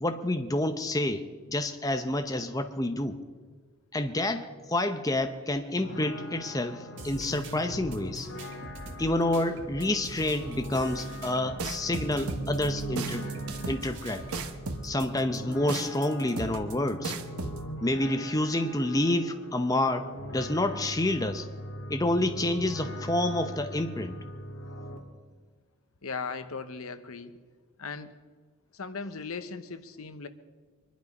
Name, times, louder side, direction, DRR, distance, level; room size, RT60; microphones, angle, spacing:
voice 1, 0.0-3.2 3.9-8.3 9.0-13.3 13.7-14.2 14.8-17.2 17.8-21.5 21.9-24.2, left 1 dB, 15° left, 7 dB, 0.7 m, -28 dB
sound 1, 5.8-25.0, equal, 65° left, 2.1 m, -40 dB
sound 2, 7.0-14.5, right 1 dB, 55° right, 2.1 m, -44 dB
sound 3, 11.6-17.6, right 3 dB, 90° right, 1.2 m, -35 dB
voice 2, 26.0-27.3 27.8-28.2 28.7-30.3, left 4 dB, 80° left, 11 dB, 1.0 m, -38 dB
24.0 x 11.5 x 5.3 m, 1.4 s
head